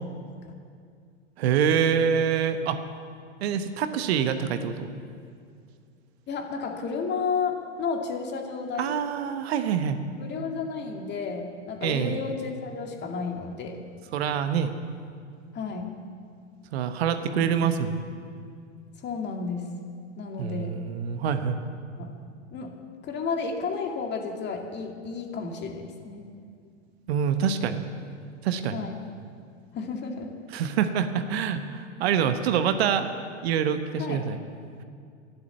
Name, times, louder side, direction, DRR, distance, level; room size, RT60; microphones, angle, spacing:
voice 1, 1.4-2.8 3.4-4.9 8.8-10.0 11.8-12.2 14.1-14.7 16.7-18.0 20.4-21.6 27.1-27.8 28.4-28.8 30.5-33.1 33.4-34.4, right 8 dB, 60° right, 9 dB, 1.2 m, -25 dB
voice 2, 6.3-8.9 10.2-13.9 15.5-15.9 17.3-17.7 19.0-19.7 20.2-20.7 22.0-22.1 22.5-22.7 23.0-26.2 28.7-29.0 29.7-30.3 34.0-34.3, left 5 dB, 30° left, 3 dB, 2.2 m, -32 dB
11.5 x 11.0 x 9.5 m, 2.2 s
hypercardioid pair, 100°, 36 cm